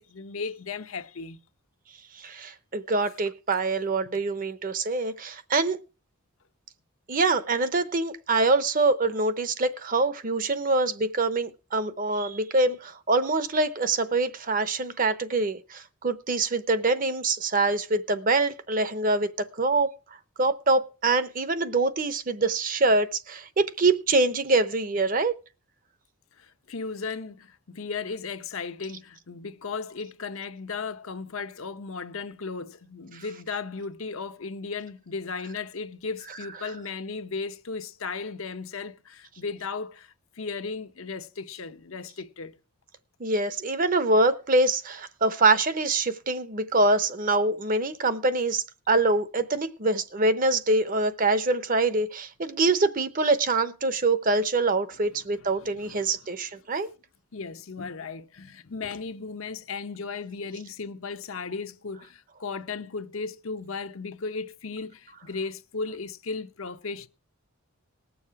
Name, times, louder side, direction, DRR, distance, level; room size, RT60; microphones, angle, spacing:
voice 1, 0.0-1.4 26.4-42.6 55.6-56.4 57.3-67.1, left 4 dB, 65° left, 0.8 m, -36 dB
voice 2, 2.2-5.8 7.1-19.9 20.4-25.3 36.6-36.7 43.2-56.9, right 3 dB, 40° right, 0.8 m, -25 dB
19.0 x 7.1 x 4.7 m
head